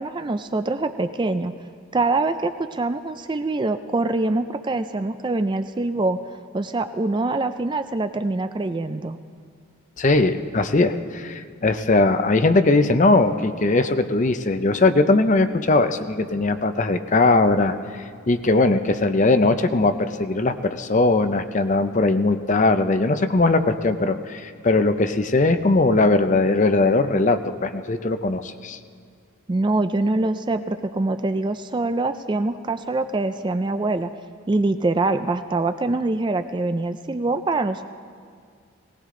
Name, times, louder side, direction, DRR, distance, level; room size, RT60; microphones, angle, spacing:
voice 1, 0.0-1.5 1.9-6.2 6.5-9.2 29.5-34.1 34.5-37.9, right 2 dB, 20° right, 10 dB, 0.3 m, -24 dB
voice 2, 10.0-17.7 18.3-28.8, left 2 dB, 35° left, 10 dB, 0.6 m, -20 dB
19.0 x 18.5 x 3.8 m, 2.1 s
head